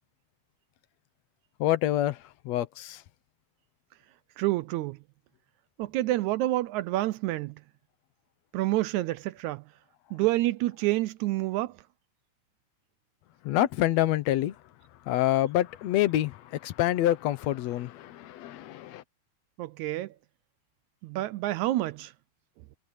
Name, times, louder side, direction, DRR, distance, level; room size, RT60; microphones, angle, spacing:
voice 1, 1.6-3.0 13.4-14.6 15.1-19.0, left 13 dB, 65° left, 1.9 m, -27 dB
voice 2, 4.4-5.0 5.8-7.6 8.5-9.6 10.1-11.8 19.6-20.1 21.0-22.1, right 16 dB, 80° right, 1.8 m, -28 dB
omnidirectional pair, 3.7 m